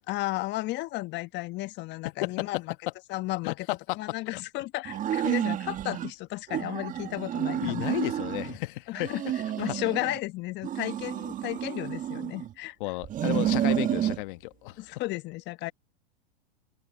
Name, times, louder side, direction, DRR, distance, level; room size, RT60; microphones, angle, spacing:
voice 1, 0.1-2.7 3.1-8.0 8.9-12.8 14.8-15.7, left 19 dB, 35° left, 1.3 m, -34 dB
voice 2, 3.4-3.8 4.3-4.4 7.6-9.1 12.8-14.9, left 21 dB, 55° left, 1.3 m, -33 dB
sound 1, 4.8-6.1 6.5-8.6 8.9-10.2 10.6-12.5 13.0-14.2, right 11 dB, 25° right, 1.5 m, -30 dB
hypercardioid pair, 115°, 32 cm